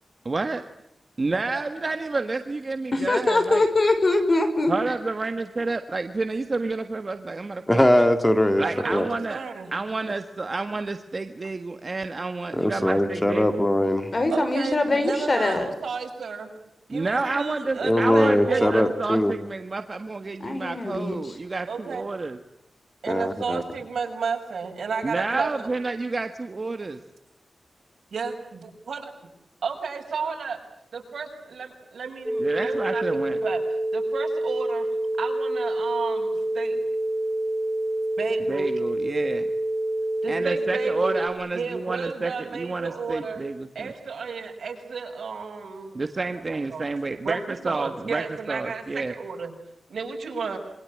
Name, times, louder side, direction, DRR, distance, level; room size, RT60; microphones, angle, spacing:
voice 1, 0.2-0.6 1.2-3.6 4.7-7.9 8.6-9.4 9.7-13.7 16.9-22.4 25.0-27.0 32.4-33.4 38.5-39.5 40.3-43.9 45.9-49.1, right 3 dB, 40° right, 7 dB, 1.5 m, -29 dB
voice 2, 2.9-4.7 14.1-15.7 20.4-21.4, left 2 dB, 35° left, 8 dB, 5.6 m, -23 dB
voice 3, 7.7-8.6 8.9-9.1 12.5-14.1 17.8-19.3 23.1-23.6, left 1 dB, 10° left, 8 dB, 2.1 m, -21 dB
voice 4, 8.6-9.0 9.3-9.7 14.3-16.5 16.9-18.9 21.7-22.0 23.0-25.7 28.1-29.1 29.6-30.6 30.9-33.0 33.3-33.6 33.9-34.9 35.2-36.8 38.2-38.8 40.2-41.2 41.5-43.4 43.7-46.0 46.7-46.8 47.2-49.5 49.9-50.6, right 5 dB, 85° right, 3 dB, 6.5 m, -32 dB
sound 1, 32.3-41.3, right 1 dB, 5° right, 4.3 m, -27 dB
27.5 x 25.0 x 8.7 m, 0.79 s
wide cardioid pair, 120°, 0 cm